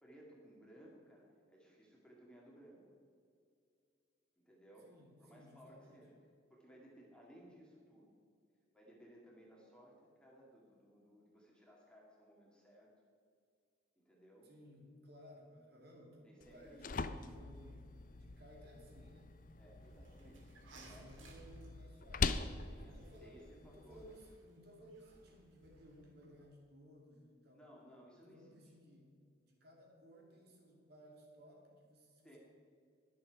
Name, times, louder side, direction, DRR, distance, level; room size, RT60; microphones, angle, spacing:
voice 1, 0.0-2.8 4.4-4.9 5.2-6.2 6.5-8.1 8.7-12.9 14.0-14.5 16.2-16.9 19.6-21.3 22.7-24.2 27.5-28.6 32.2-32.4, equal, 5° left, -4 dB, 2.2 m, -60 dB
voice 2, 4.8-6.1 14.4-19.4 20.7-27.9 28.1-29.1 29.4-32.3, equal, 50° right, -1 dB, 2.6 m, -59 dB
sound 1, 16.4-24.4, left 4 dB, 40° left, 0.5 m, -43 dB
sound 2, 19.8-26.5, right 2 dB, 75° right, 2.6 m, -62 dB
21.0 x 7.2 x 4.8 m, 2.4 s
head